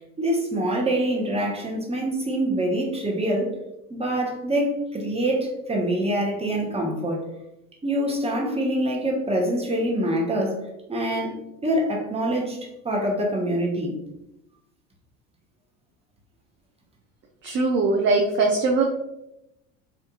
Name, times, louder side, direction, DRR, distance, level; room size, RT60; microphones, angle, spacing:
voice 1, 0.2-3.5 3.9-7.2 7.8-10.6 10.9-11.3 11.6-12.6 12.8-13.9, right 1 dB, 15° right, -1 dB, 0.7 m, -25 dB
voice 2, 17.4-18.8, right 3 dB, 30° right, 2 dB, 0.4 m, -21 dB
2.6 x 2.4 x 2.3 m, 0.88 s
hypercardioid pair, 75°, 41 cm